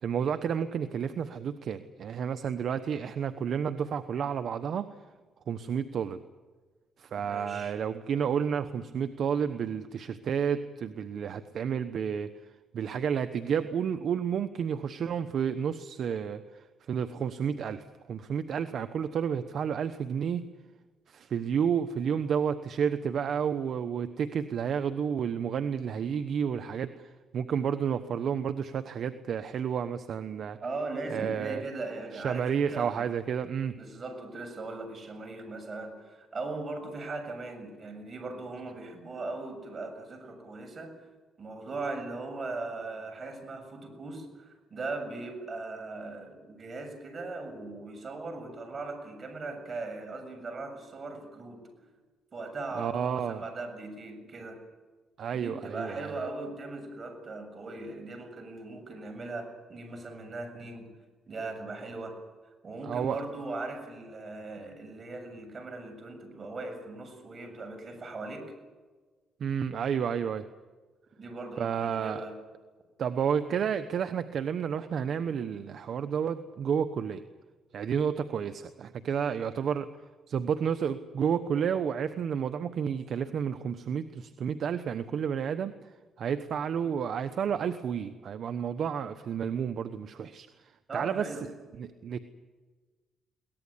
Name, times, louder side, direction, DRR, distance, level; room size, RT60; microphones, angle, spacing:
voice 1, 0.0-4.9 5.5-6.2 7.0-12.3 12.7-20.5 21.1-30.6 31.1-31.6 32.1-33.8 52.7-53.4 55.2-56.3 62.8-63.2 69.4-70.4 71.6-72.2 73.0-77.2 77.7-79.9 80.3-91.3 91.8-92.2, right 7 dB, 60° right, 10 dB, 1.1 m, -31 dB
voice 2, 7.2-7.8 30.6-33.1 33.8-40.9 41.4-51.8 52.3-54.6 55.3-60.9 61.3-62.2 62.6-68.5 71.2-72.4 90.9-91.5, right 3 dB, 40° right, 6 dB, 7.1 m, -39 dB
22.5 x 18.5 x 9.9 m, 1.3 s
cardioid pair, 90°, 0 cm